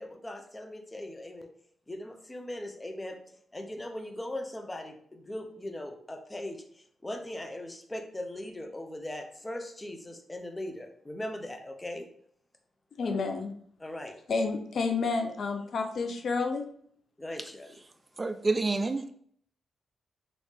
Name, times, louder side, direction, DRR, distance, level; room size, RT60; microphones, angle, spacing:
voice 1, 0.0-1.5 1.9-3.2 3.5-12.1 13.0-13.2 13.8-14.1 17.2-17.8, left 1 dB, 20° left, 5 dB, 0.6 m, -39 dB
voice 2, 13.0-13.5 14.3-16.6, left 4 dB, 60° left, 5 dB, 0.5 m, -30 dB
voice 3, 18.2-19.1, right 3 dB, 30° right, 8 dB, 0.3 m, -28 dB
3.2 x 2.6 x 3.3 m, 0.63 s
supercardioid pair, 60°, 0 cm